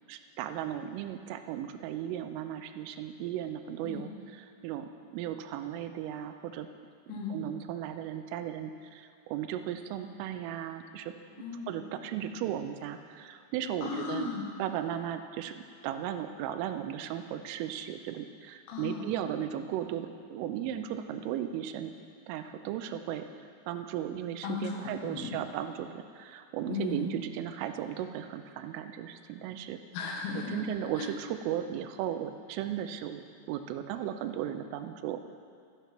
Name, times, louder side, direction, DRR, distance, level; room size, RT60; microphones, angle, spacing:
voice 1, 0.1-4.1 4.6-6.7 7.3-11.1 11.7-14.3 14.6-21.9 22.3-23.3 23.7-29.8 30.5-35.3, right 10 dB, 80° right, 8 dB, 3.1 m, -36 dB
voice 2, 11.4-11.8 13.8-14.4 18.7-19.1 24.4-25.4 26.7-27.1 29.9-30.6 30.9-31.1, left 5 dB, 75° left, 0 dB, 3.8 m, -36 dB
13.0 x 10.5 x 5.9 m, 2.4 s
omnidirectional pair, 5.9 m